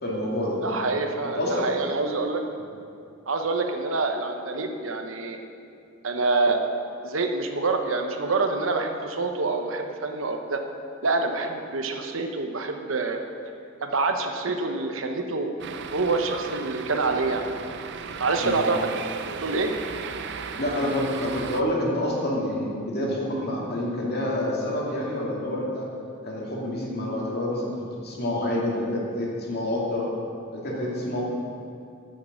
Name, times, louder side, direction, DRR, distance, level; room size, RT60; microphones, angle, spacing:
voice 1, 0.0-0.6 1.3-1.7 18.4-18.6 20.6-25.9 26.2-27.7 28.0-30.1 30.5-31.2, left 1 dB, 55° left, -4 dB, 2.5 m, -27 dB
voice 2, 0.6-2.4 3.3-5.4 6.0-6.6 7.0-10.6 11.0-13.2 13.8-15.5 15.9-17.4 18.2-19.0 19.3-19.7, right 3 dB, 80° right, 5 dB, 1.0 m, -26 dB
sound 1, 15.6-21.6, right 6 dB, 60° right, 0.5 m, -36 dB
9.5 x 6.6 x 7.3 m, 2.5 s
head